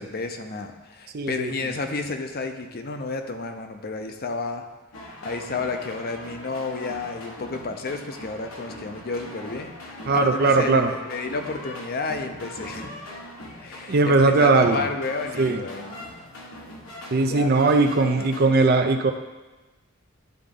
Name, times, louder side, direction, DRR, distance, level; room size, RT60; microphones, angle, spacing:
voice 1, 0.0-4.7 5.0-9.7 10.1-12.9 13.6-16.0 17.3-18.5, left 3 dB, 45° left, 6 dB, 0.6 m, -31 dB
voice 2, 1.1-1.5 10.1-10.9 13.9-14.9 15.4-15.6 17.1-19.1, right 3 dB, 50° right, 6 dB, 0.5 m, -19 dB
sound 1, 4.9-18.4, left 1 dB, 90° left, 1.4 m, -41 dB
11.5 x 3.9 x 3.7 m, 1.2 s
head